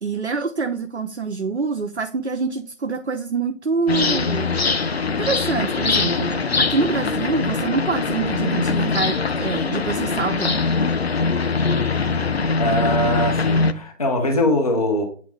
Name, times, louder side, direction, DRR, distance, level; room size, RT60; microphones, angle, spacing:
voice 1, 0.0-4.6 5.2-10.6 12.8-12.9, right 4 dB, 55° right, 7 dB, 0.6 m, -25 dB
sound 1, 3.9-13.7, left 4 dB, 50° left, 0.5 m, -22 dB
voice 2, 12.6-15.0, left 1 dB, 30° left, 1 dB, 0.9 m, -21 dB
8.5 x 3.5 x 3.4 m, 0.42 s
figure-of-eight pair, 155°, 39 cm